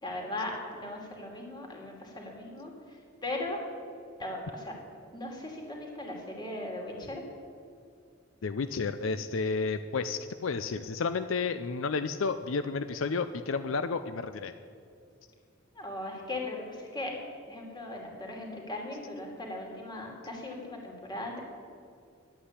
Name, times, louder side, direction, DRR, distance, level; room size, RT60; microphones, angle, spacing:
voice 1, 0.0-3.6 4.2-4.8 5.1-7.2 15.7-17.1 17.5-21.4, left 2 dB, 20° left, 0 dB, 2.7 m, -38 dB
voice 2, 8.4-14.5, left 4 dB, 70° left, 10 dB, 0.5 m, -31 dB
12.0 x 8.7 x 9.7 m, 2.5 s
head